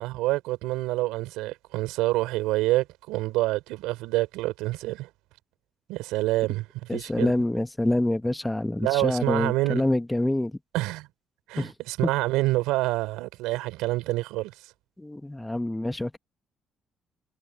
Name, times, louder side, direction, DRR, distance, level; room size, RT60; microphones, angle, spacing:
voice 1, 0.0-5.1 5.9-7.3 8.8-9.8 10.7-11.1 11.5-14.5, right 19 dB, 80° right, 4.2 m, -27 dB
voice 2, 6.9-10.6 11.6-11.7 15.0-16.2, left 1 dB, 10° left, 1.6 m, -26 dB
supercardioid pair, 60°, 0 cm